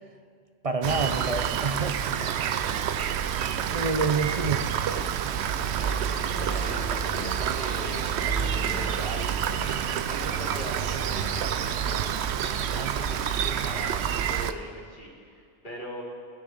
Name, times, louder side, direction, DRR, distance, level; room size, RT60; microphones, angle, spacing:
voice 1, 0.6-2.4 3.7-4.6, right 4 dB, 45° right, 6 dB, 0.5 m, -28 dB
Rain, 0.8-14.5, right 8 dB, 80° right, 0.9 m, -28 dB
voice 2, 5.8-16.0, equal, 50° left, -3 dB, 2.7 m, -41 dB
sound 1, 6.3-11.4, left 1 dB, 75° left, 1.8 m, -42 dB
20.5 x 6.9 x 5.4 m, 2.3 s
omnidirectional pair, 1.1 m